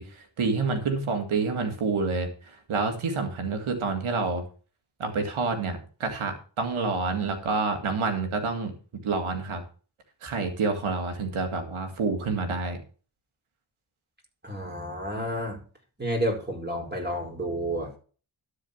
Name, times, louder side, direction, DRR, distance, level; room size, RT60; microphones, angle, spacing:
voice 1, 0.0-2.3 2.7-4.5 5.0-8.7 9.0-9.6 10.2-12.8, right 4 dB, 90° right, 2.1 m, -28 dB
voice 2, 14.4-15.6 16.0-18.0, right 1 dB, 20° right, 4.8 m, -30 dB
12.0 x 4.9 x 7.1 m
cardioid pair, 40°, 47 cm